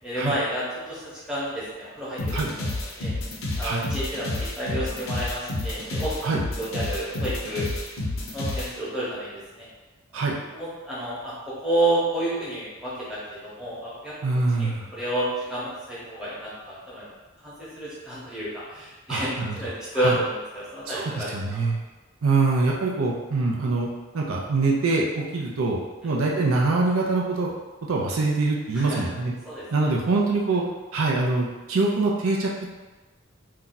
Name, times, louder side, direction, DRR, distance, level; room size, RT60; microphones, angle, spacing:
voice 1, 0.0-3.1 3.6-7.7 8.3-9.7 10.5-14.1 14.5-17.1 17.4-21.6 26.0-26.1 28.7-29.1 29.4-29.9, right 1 dB, 5° right, -10 dB, 0.9 m, -30 dB
sound 1, 2.2-8.7, left 2 dB, 75° left, 0.6 m, -29 dB
voice 2, 14.2-14.9 19.1-19.6 20.0-20.1 20.9-21.8 22.2-23.9 24.1-27.5 27.9-29.3 29.7-30.6 30.9-32.5, right 3 dB, 80° right, -2 dB, 0.5 m, -24 dB
2.7 x 2.3 x 3.8 m, 1.2 s
head